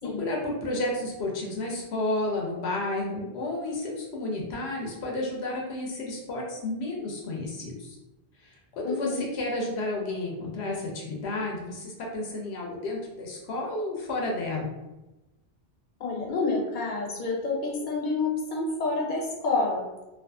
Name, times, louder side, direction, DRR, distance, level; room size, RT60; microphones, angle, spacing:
voice 1, 0.2-8.0 8.4-14.7, left 2 dB, 80° left, -1 dB, 0.8 m, -31 dB
voice 2, 8.8-9.2 16.0-19.8, left 3 dB, 50° left, -2 dB, 0.8 m, -28 dB
2.5 x 2.4 x 2.3 m, 1.0 s
omnidirectional pair, 1.1 m